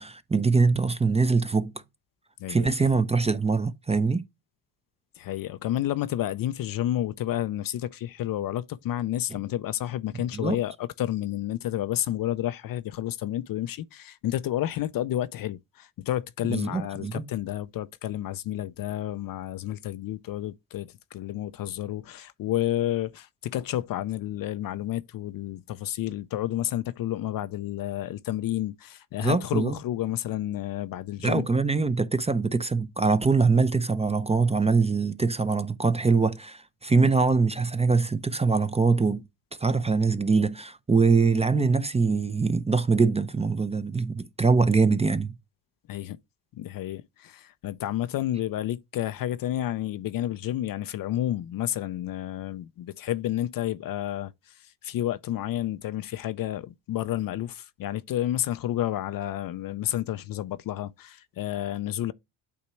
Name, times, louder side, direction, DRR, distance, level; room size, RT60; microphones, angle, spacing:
voice 1, 0.0-1.7 2.5-4.2 10.1-10.6 16.5-17.2 29.2-29.8 31.2-39.2 39.6-45.3, right 4 dB, 15° right, 0.5 m, -23 dB
voice 2, 2.4-2.9 5.2-31.5 45.9-46.2 46.5-62.1, left 13 dB, 50° left, 0.5 m, -30 dB
8.5 x 2.9 x 4.4 m
supercardioid pair, 80°, 47 cm